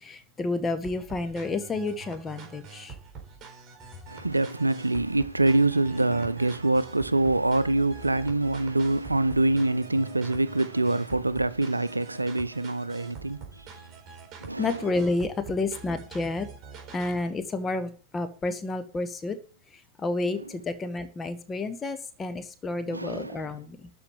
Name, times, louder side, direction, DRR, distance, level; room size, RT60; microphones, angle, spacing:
voice 1, 0.0-2.9 14.6-16.5 16.9-19.4 20.0-23.9, left 3 dB, 20° left, 1.8 m, -30 dB
sound 1, 0.8-17.2, right 5 dB, 30° right, 4.5 m, -45 dB
voice 2, 4.1-13.7 14.4-14.9 22.9-23.5, right 2 dB, 85° right, 0.6 m, -25 dB
13.0 x 5.3 x 8.6 m
figure-of-eight pair, 90°, 0 cm